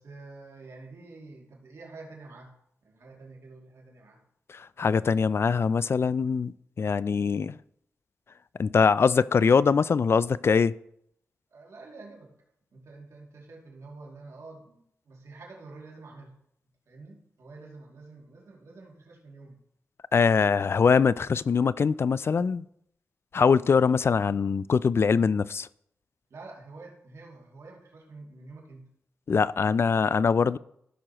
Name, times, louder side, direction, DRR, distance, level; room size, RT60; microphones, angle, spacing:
voice 1, 0.0-2.6 2.8-4.2 11.5-12.3 12.7-16.4 16.9-19.6 26.3-28.9, right 3 dB, 70° right, 2.5 m, -48 dB
voice 2, 4.5-7.6 8.6-10.7 20.1-22.7 23.3-25.7 29.3-30.6, left 5 dB, 50° left, 0.3 m, -23 dB
15.0 x 6.3 x 3.0 m
cardioid pair, 60°, 5 cm